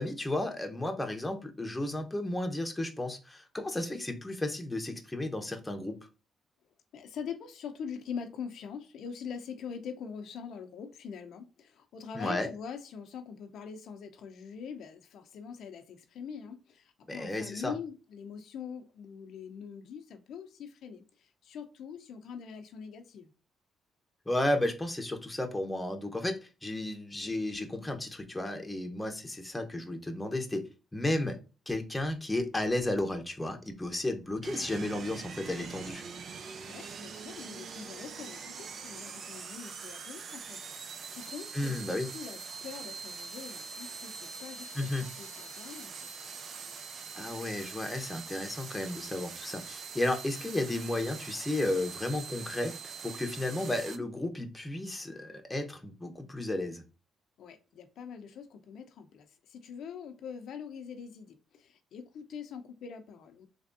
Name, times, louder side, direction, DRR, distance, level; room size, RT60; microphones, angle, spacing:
voice 1, 0.0-6.0 12.1-12.5 17.1-17.7 24.3-31.4 31.7-36.0 41.5-42.1 44.7-45.1 47.1-52.8 53.0-56.8, left 1 dB, 10° left, 0.8 m, -33 dB
voice 2, 6.9-23.3 36.7-46.0 57.4-63.5, left 6 dB, 75° left, 0.5 m, -43 dB
sound 1, 34.4-54.0, right 5 dB, 55° right, 0.4 m, -43 dB
3.4 x 3.3 x 2.6 m
cardioid pair, 90°, 0 cm